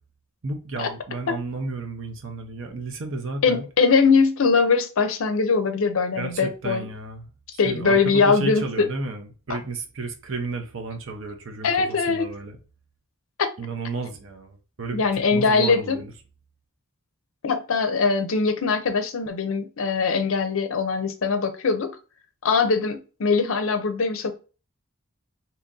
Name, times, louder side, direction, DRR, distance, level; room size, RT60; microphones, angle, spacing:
voice 1, 0.4-3.6 6.2-12.6 13.6-16.1, right 3 dB, 60° right, 0.7 m, -33 dB
voice 2, 3.4-6.8 7.6-8.9 11.6-12.3 13.4-13.5 14.9-16.0 17.4-22.0 22.4-24.3, left 4 dB, 65° left, 0.5 m, -21 dB
2.8 x 2.6 x 3.7 m
head